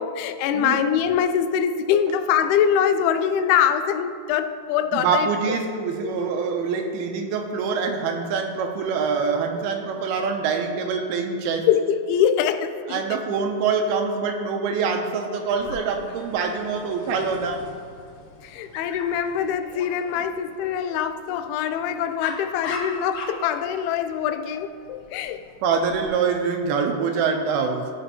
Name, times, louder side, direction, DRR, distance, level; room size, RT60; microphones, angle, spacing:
voice 1, 0.0-5.6 6.0-6.1 11.7-13.2 18.4-25.4, left 8 dB, 90° left, 10 dB, 2.5 m, -23 dB
voice 2, 4.9-11.7 12.9-17.6 25.6-27.9, right 5 dB, 85° right, 4 dB, 2.6 m, -25 dB
Dog, 15.5-26.1, left 3 dB, 70° left, 2.5 m, -40 dB
16.5 x 6.0 x 2.9 m, 2.2 s
omnidirectional pair, 4.4 m